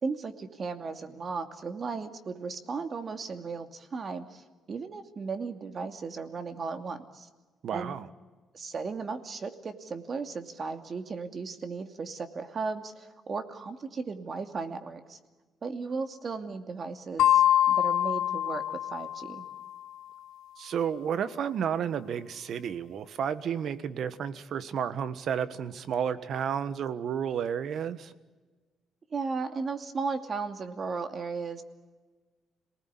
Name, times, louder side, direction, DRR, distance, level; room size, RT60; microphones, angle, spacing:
voice 1, 0.0-7.3 7.7-7.9 8.5-15.2 15.6-19.5 29.1-31.6, right 4 dB, 45° right, 7 dB, 2.5 m, -36 dB
voice 2, 7.6-8.1 20.6-28.1, right 8 dB, 65° right, 13 dB, 1.5 m, -31 dB
sound 1, 17.2-19.7, left 11 dB, 85° left, 1.0 m, -25 dB
27.0 x 19.5 x 9.8 m, 1.3 s
cardioid pair, 90°, 0 cm